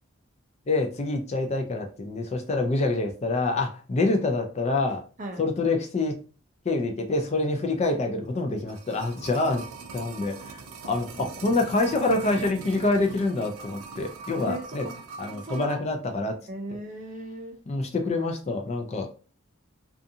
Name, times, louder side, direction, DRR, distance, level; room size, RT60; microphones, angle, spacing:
voice 1, 0.7-5.0 5.4-6.2 6.7-9.6 9.9-10.6 10.8-14.8 15.2-16.4 17.7-19.2, left 2 dB, 30° left, 4 dB, 0.4 m, -26 dB
sound 1, 8.4-15.8 16.1-16.2, right 4 dB, 85° right, 0.5 m, -41 dB
voice 2, 14.4-14.9 15.3-15.8 16.5-17.6, right 1 dB, 35° right, 3 dB, 0.5 m, -37 dB
2.5 x 2.4 x 2.6 m, 0.36 s
head